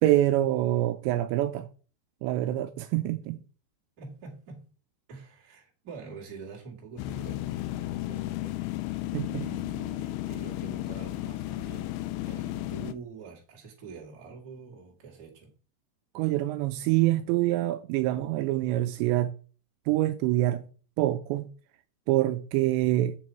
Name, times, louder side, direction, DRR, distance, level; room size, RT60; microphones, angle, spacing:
voice 1, 0.0-1.7 2.2-3.4 9.1-9.5 16.2-19.3 19.9-20.7 21.0-21.5 22.1-23.2, right 15 dB, 85° right, 2.6 m, -25 dB
voice 2, 4.0-4.7 5.1-8.6 9.4-15.5, right 5 dB, 35° right, 1.5 m, -46 dB
sound 1, 7.0-12.9, left 16 dB, 85° left, 2.9 m, -34 dB
7.3 x 6.9 x 4.4 m
omnidirectional pair, 5.3 m